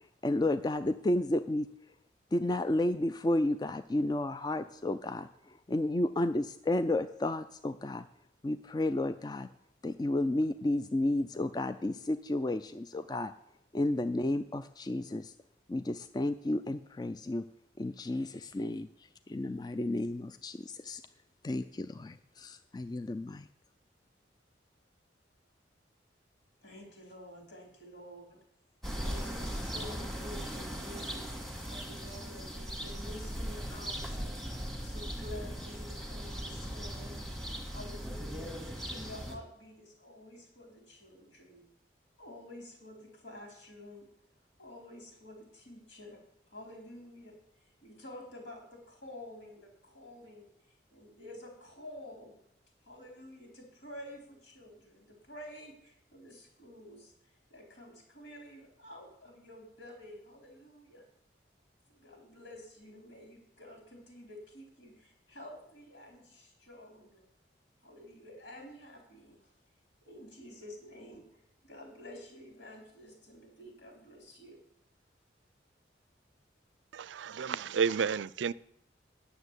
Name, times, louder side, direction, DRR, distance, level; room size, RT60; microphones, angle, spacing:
voice 1, 0.2-1.7 2.3-5.3 5.7-8.0 8.4-9.5 9.8-13.3 13.7-15.3 15.7-17.4 17.8-18.9 19.3-21.0 21.4-23.5, left 1 dB, 20° left, 0.3 m, -32 dB
voice 2, 26.6-28.4 29.0-34.3 34.8-41.7 42.2-44.1 44.6-46.2 46.5-47.3 47.8-50.4 50.9-52.3 52.8-57.1 57.5-61.0 61.9-67.2 67.8-69.4 70.1-74.6, left 1 dB, 80° left, 4.2 m, -50 dB
sound 1, 28.8-39.4, equal, ahead, 1.6 m, -39 dB
voice 3, 76.9-78.5, right 6 dB, 85° right, 0.4 m, -31 dB
9.7 x 7.0 x 8.1 m
head